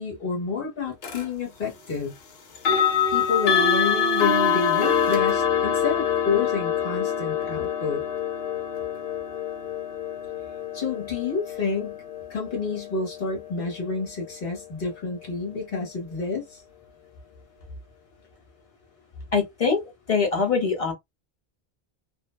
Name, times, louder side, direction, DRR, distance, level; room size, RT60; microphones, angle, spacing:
voice 1, 0.0-2.1 3.1-8.0 10.7-12.0 12.3-16.6, left 4 dB, 60° left, 1.3 m, -29 dB
sound 1, 1.0-1.2 2.5-13.4, left 7 dB, 80° left, 0.9 m, -25 dB
voice 2, 19.3-19.8 20.1-20.9, left 5 dB, 35° left, 0.8 m, -23 dB
2.6 x 2.2 x 2.2 m
omnidirectional pair, 1.0 m